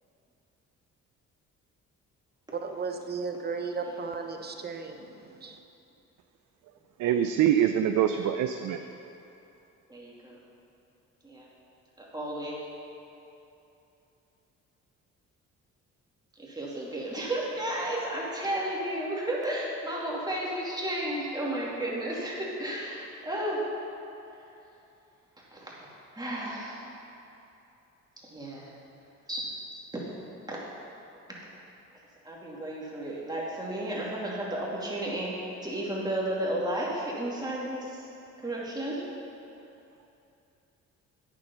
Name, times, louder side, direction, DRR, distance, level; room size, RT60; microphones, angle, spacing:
voice 1, 2.5-5.6, right 4 dB, 35° right, 5 dB, 0.9 m, -35 dB
voice 2, 7.0-8.8, right 10 dB, 75° right, 7 dB, 0.5 m, -24 dB
voice 3, 9.9-10.4 11.2-11.5 12.0-12.6 16.4-23.6 25.5-25.8 26.1-26.9 28.2-28.7 29.3-29.4 30.5-30.6 31.4-31.5 32.2-35.3 35.6-38.1 38.4-39.0, right 1 dB, 15° right, -5 dB, 2.5 m, -33 dB
8.8 x 7.3 x 5.5 m, 2.9 s
cardioid pair, 90°, 30 cm